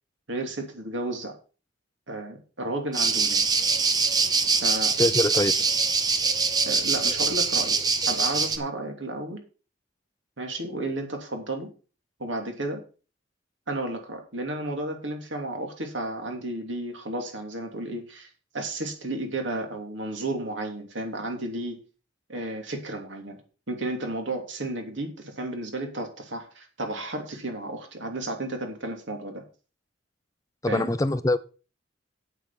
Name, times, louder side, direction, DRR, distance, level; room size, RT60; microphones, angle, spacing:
voice 1, 0.3-1.3 2.1-3.4 4.5-4.9 6.7-9.4 10.4-11.7 12.2-12.8 13.7-21.8 22.3-23.4 23.7-29.4 30.7-30.9, right 2 dB, 70° right, 3 dB, 3.1 m, -33 dB
sound 1, 2.9-8.6, right 4 dB, 20° right, 0.9 m, -23 dB
voice 2, 5.0-5.5 30.6-31.4, left 2 dB, 15° left, 14 dB, 0.4 m, -23 dB
8.6 x 8.3 x 5.8 m, 0.36 s
head